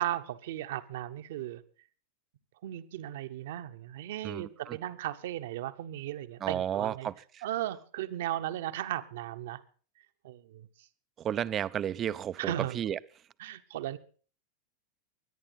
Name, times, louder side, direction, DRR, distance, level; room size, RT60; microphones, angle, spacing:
voice 1, 0.0-1.6 2.6-7.1 7.4-9.6 10.2-10.7 12.4-12.8 13.4-14.0, right 13 dB, 55° right, 10 dB, 1.0 m, -36 dB
voice 2, 4.2-4.8 6.4-7.1 11.2-13.0, right 10 dB, 25° right, 15 dB, 0.6 m, -32 dB
23.5 x 10.5 x 4.1 m, 0.41 s
figure-of-eight pair, 90°, 0 cm